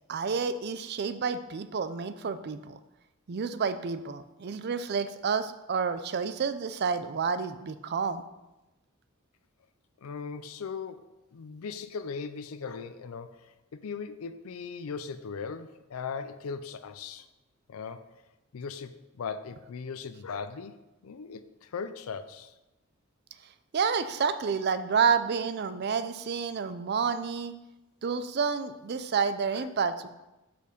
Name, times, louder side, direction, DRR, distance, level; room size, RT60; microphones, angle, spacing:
voice 1, 0.1-2.8 3.3-8.2 23.7-27.5 28.0-30.1, right 5 dB, 50° right, 12 dB, 0.4 m, -29 dB
voice 2, 10.0-11.0 11.3-17.3 17.7-18.0 18.5-18.9 19.2-20.8 21.0-22.5 29.5-29.7, left 5 dB, 85° left, 11 dB, 0.4 m, -38 dB
6.9 x 5.1 x 5.1 m, 1.0 s
head